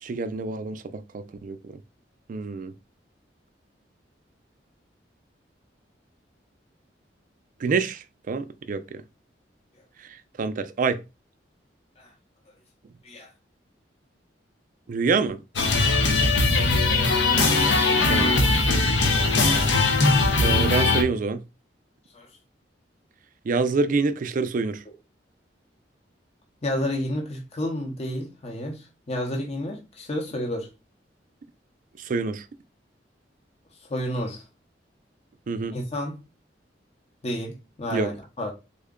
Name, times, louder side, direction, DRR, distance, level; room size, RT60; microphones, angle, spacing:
voice 1, 0.0-1.8 2.3-2.7 7.6-9.0 10.0-11.0 14.9-15.4 17.4-17.7 18.1-18.3 20.4-21.4 23.4-24.8 32.0-32.5 35.5-35.8 37.9-38.1, right 4 dB, 50° right, 0.4 m, -27 dB
sound 1, 15.6-21.0, left 3 dB, 85° left, 0.8 m, -20 dB
voice 2, 26.6-30.7 33.9-34.4 35.7-36.2 37.2-38.5, left 1 dB, 35° left, 0.7 m, -30 dB
3.6 x 2.1 x 3.6 m
head